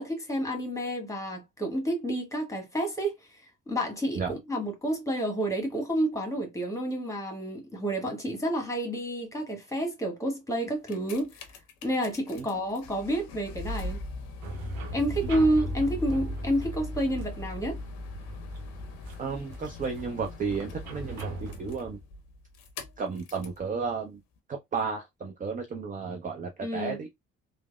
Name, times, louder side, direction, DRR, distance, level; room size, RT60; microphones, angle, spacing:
voice 1, 0.0-3.2 3.7-11.3 11.8-14.0 14.9-17.8 26.6-27.0, right 1 dB, 5° left, 1.2 m, -29 dB
sound 1, 10.6-23.6 24.4-24.5, left 3 dB, 65° left, 0.7 m, -39 dB
sound 2, 14.4-21.8, right 3 dB, 70° right, 0.8 m, -41 dB
voice 2, 19.2-22.0 23.0-24.2 24.5-27.1, right 5 dB, 20° right, 0.4 m, -33 dB
3.2 x 2.1 x 2.2 m
figure-of-eight pair, 45°, 44 cm